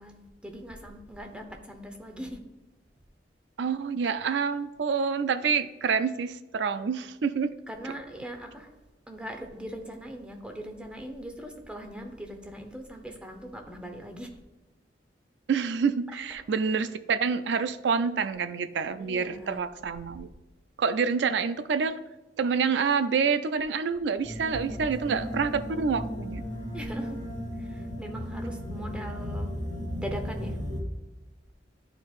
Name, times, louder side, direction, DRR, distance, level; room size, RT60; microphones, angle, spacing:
voice 1, 0.0-2.4 7.7-8.7 9.1-14.3 18.9-19.6 24.7-24.9 25.2-25.3 26.7-27.2 27.6-29.5 30.0-30.6, equal, 5° right, 3 dB, 0.8 m, -40 dB
voice 2, 3.6-7.5 15.5-20.3 20.8-22.0 22.4-26.5, right 5 dB, 75° right, 12 dB, 0.4 m, -27 dB
sound 1, 24.2-30.8, equal, 55° right, 2.2 m, -35 dB
10.5 x 4.4 x 2.4 m, 1.1 s
head